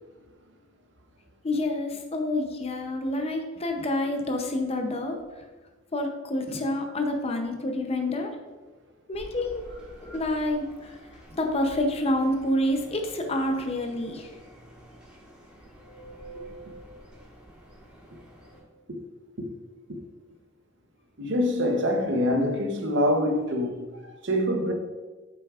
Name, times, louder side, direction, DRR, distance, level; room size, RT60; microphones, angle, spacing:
voice 1, 1.4-5.2 5.9-8.3 9.1-9.6 10.0-11.0 11.4-14.3, left 1 dB, 30° left, 0.7 m, -28 dB
sound 1, 9.1-18.6, right 1 dB, 5° right, 1.7 m, -48 dB
voice 2, 21.2-24.7, equal, 65° right, 0.9 m, -25 dB
8.2 x 6.0 x 2.5 m
head